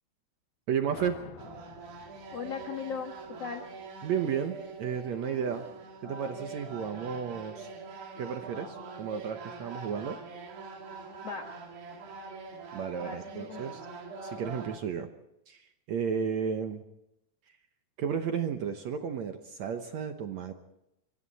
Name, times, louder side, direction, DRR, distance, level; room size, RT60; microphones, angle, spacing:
voice 1, 0.7-1.2 4.0-5.7 6.0-7.7 8.2-10.2 12.7-13.8 14.2-15.1 15.5-16.8 18.0-20.5, right 7 dB, 70° right, 7 dB, 1.7 m, -33 dB
sound 1, 0.9-4.2, left 12 dB, 75° left, 2.6 m, -51 dB
sound 2, 1.4-14.8, right 4 dB, 90° right, 4.8 m, -44 dB
voice 2, 2.3-3.7 6.1-6.3 11.2-11.5 13.0-13.9, left 6 dB, 55° left, 3 dB, 1.9 m, -39 dB
25.0 x 24.5 x 4.2 m, 0.86 s
omnidirectional pair, 4.6 m